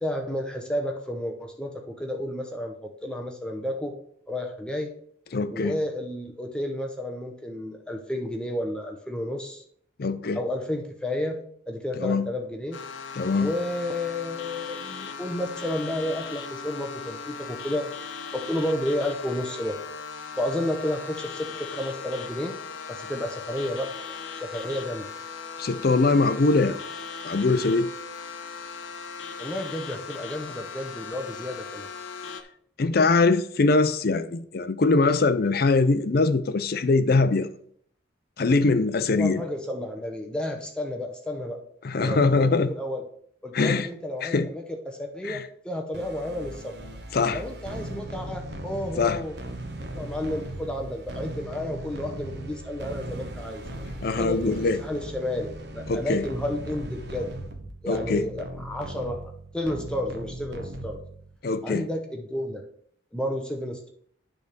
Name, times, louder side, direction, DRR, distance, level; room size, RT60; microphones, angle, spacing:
voice 1, 0.0-3.9 4.3-4.9 5.5-9.6 10.3-12.8 13.4-17.9 18.3-19.8 20.4-22.6 22.9-23.9 24.4-25.1 29.4-31.9 39.2-41.6 42.0-43.1 43.4-46.8 47.3-49.4 49.9-53.6 54.2-57.3 57.8-61.0 61.6-62.7 63.1-63.9, left 1 dB, 5° left, 0.7 m, -31 dB
voice 2, 5.3-5.7 10.0-10.4 12.0-12.3 13.1-13.5 25.6-26.8 27.2-27.9 32.8-37.5 38.4-39.4 41.8-42.7 43.5-43.9 44.2-44.5 45.2-45.4 47.1-47.4 49.0-49.2 54.0-54.8 55.9-56.2 57.9-58.2 61.4-61.9, left 3 dB, 50° left, 0.5 m, -22 dB
sound 1, 12.7-32.4, left 5 dB, 75° left, 0.9 m, -38 dB
sound 2, 45.9-61.4, right 1 dB, 60° right, 0.9 m, -38 dB
9.1 x 3.5 x 6.6 m
head